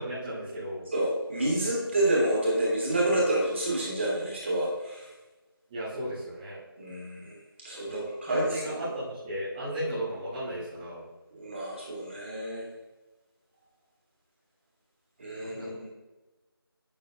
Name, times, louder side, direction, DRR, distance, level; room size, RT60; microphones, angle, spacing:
voice 1, 0.0-0.9 5.7-6.6 7.8-11.0 15.4-15.8, right 1 dB, 10° right, -15 dB, 1.4 m, -35 dB
voice 2, 0.9-5.1 6.8-7.4 7.6-8.8 11.3-12.6 15.2-15.9, right 1 dB, 30° right, -4 dB, 2.4 m, -28 dB
11.5 x 8.4 x 2.6 m, 1.1 s
figure-of-eight pair, 170°, 13 cm